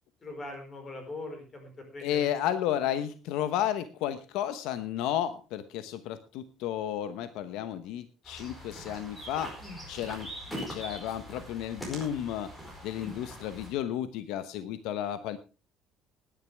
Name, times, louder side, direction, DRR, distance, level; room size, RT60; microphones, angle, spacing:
voice 1, 0.2-2.2 9.6-9.8 13.0-13.2, left 2 dB, 25° left, 4 dB, 4.8 m, -41 dB
voice 2, 2.0-9.6 9.9-12.5 12.8-15.4, left 11 dB, 75° left, 11 dB, 1.0 m, -32 dB
sound 1, 8.2-13.7, equal, 10° left, 4.9 m, -42 dB
19.0 x 10.5 x 3.4 m, 0.31 s
cardioid pair, 165°, 0 cm